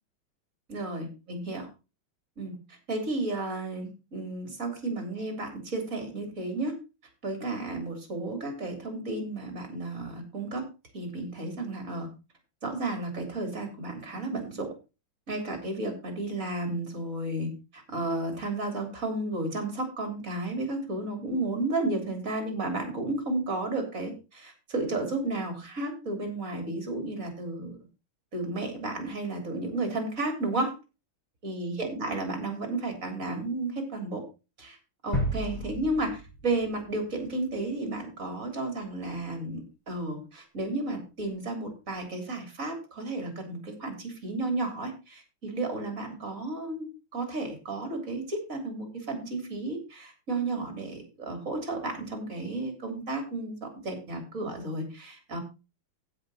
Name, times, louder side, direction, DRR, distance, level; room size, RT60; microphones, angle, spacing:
voice 1, 0.7-1.7 2.4-6.8 7.2-10.6 10.9-12.1 12.6-14.7 15.3-27.9 28.3-30.7 31.4-34.2 34.6-34.8 35.0-55.4, right 2 dB, 35° right, 5 dB, 3.6 m, -33 dB
sound 1, 35.1-37.1 37.4-37.6, equal, 25° left, 4.9 m, -33 dB
16.0 x 6.0 x 4.1 m, 0.29 s
omnidirectional pair, 2.4 m